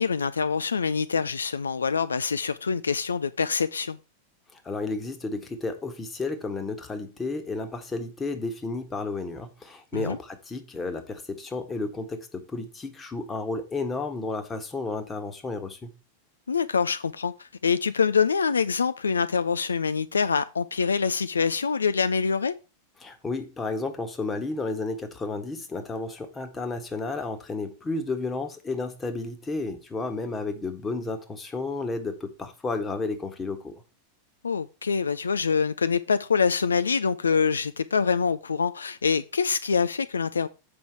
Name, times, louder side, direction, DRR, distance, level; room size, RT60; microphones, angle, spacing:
voice 1, 0.0-4.0 9.9-10.2 16.5-22.5 34.4-40.5, left 5 dB, 75° left, 0.4 m, -25 dB
voice 2, 4.6-15.9 23.0-33.8, left 3 dB, 15° left, 1.5 m, -32 dB
7.8 x 5.4 x 4.5 m
figure-of-eight pair, 90°, 0 cm